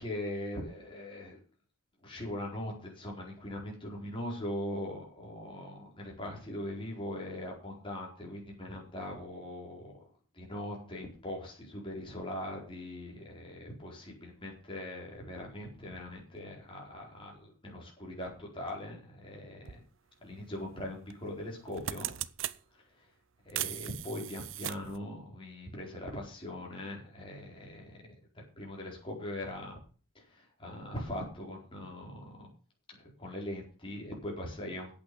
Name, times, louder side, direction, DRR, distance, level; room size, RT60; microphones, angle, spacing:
voice 1, 0.0-1.4 2.0-10.0 10.3-19.8 20.2-22.1 23.5-28.0 28.6-29.8 30.3-32.5 33.0-34.9, left 1 dB, 25° left, -2 dB, 4.4 m, -41 dB
sound 1, 19.7-19.8 21.1-21.3 21.6-22.6 23.5-25.0, right 12 dB, 60° right, 0.6 m, -37 dB
8.7 x 8.4 x 7.8 m, 0.40 s
head